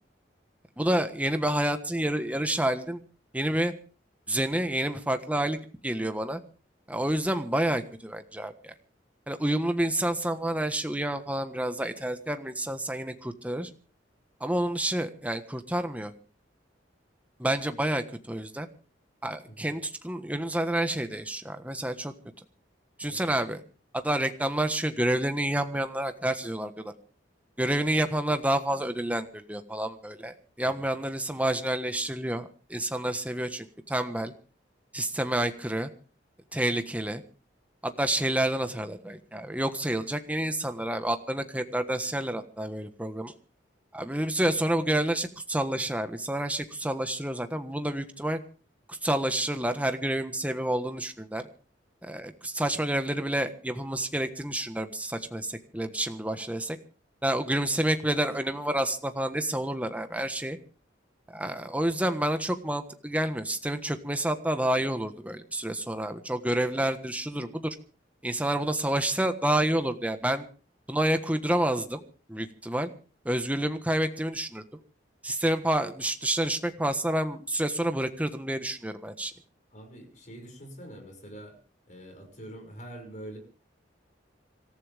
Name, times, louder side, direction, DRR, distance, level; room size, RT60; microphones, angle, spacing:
voice 1, 0.8-3.0 3.3-3.7 4.3-5.6 5.8-6.4 6.9-8.7 9.3-13.7 14.4-16.1 17.4-18.7 19.2-22.1 23.0-23.6 23.9-26.9 27.6-34.3 34.9-35.9 36.5-37.2 37.8-43.3 43.9-48.4 48.9-51.5 52.0-56.8 57.2-60.6 61.3-67.8 68.2-70.5 70.9-72.0 72.3-72.9 73.2-74.6 75.2-79.3, right 1 dB, 10° right, 8 dB, 1.3 m, -29 dB
voice 2, 79.7-81.6 81.9-83.4, right 1 dB, 40° left, 4 dB, 6.2 m, -45 dB
26.0 x 14.5 x 3.5 m, 0.38 s
head